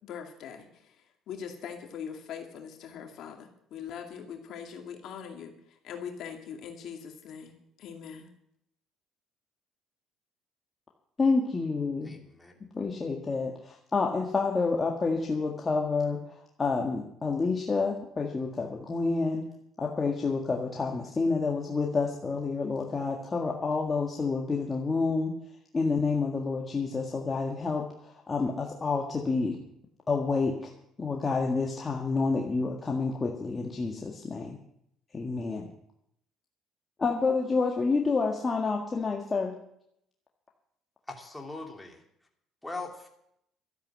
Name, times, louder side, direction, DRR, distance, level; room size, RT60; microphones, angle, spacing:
voice 1, 0.0-1.0 1.3-5.5 5.8-8.3, left 7 dB, 65° left, 3 dB, 2.4 m, -41 dB
voice 2, 11.2-12.2 12.7-19.5 19.8-25.3 25.7-29.6 30.1-30.7 31.0-34.6 35.1-35.7 37.0-39.5, left 4 dB, 25° left, 0 dB, 1.7 m, -29 dB
voice 3, 12.0-12.6 41.1-42.0 42.6-43.1, left 3 dB, 5° left, 1 dB, 2.9 m, -41 dB
13.0 x 10.5 x 7.5 m, 0.75 s
cardioid pair, 100°, 0 cm